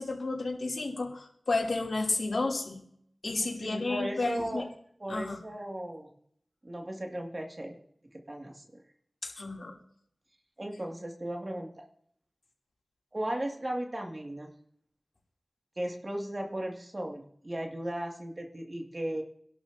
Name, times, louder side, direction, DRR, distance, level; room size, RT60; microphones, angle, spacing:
voice 1, 0.0-2.8 3.2-4.6 5.1-5.4 9.2-9.7, left 3 dB, 85° left, -1 dB, 2.9 m, -31 dB
voice 2, 3.4-4.7 5.0-6.1 6.6-7.8 8.1-8.8 10.6-11.9 13.1-14.5 15.8-19.2, right 1 dB, 40° right, 1 dB, 2.2 m, -36 dB
25.5 x 11.5 x 2.8 m, 0.67 s
wide cardioid pair, 50°, 0 cm